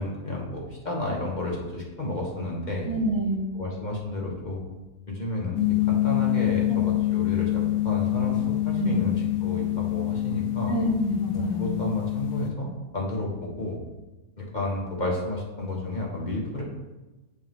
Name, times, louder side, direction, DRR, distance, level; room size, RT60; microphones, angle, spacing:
voice 1, 0.0-2.9 3.5-4.6 5.1-10.7 11.3-13.8 14.4-16.6, left 1 dB, 30° left, -3 dB, 1.4 m, -31 dB
voice 2, 2.9-3.5 6.7-6.8 8.8-9.1 10.7-11.7, right 1 dB, 20° right, -2 dB, 0.7 m, -27 dB
sound 1, 5.6-12.5, left 16 dB, 80° left, 1.3 m, -26 dB
10.5 x 4.3 x 3.6 m, 1.1 s
omnidirectional pair, 1.7 m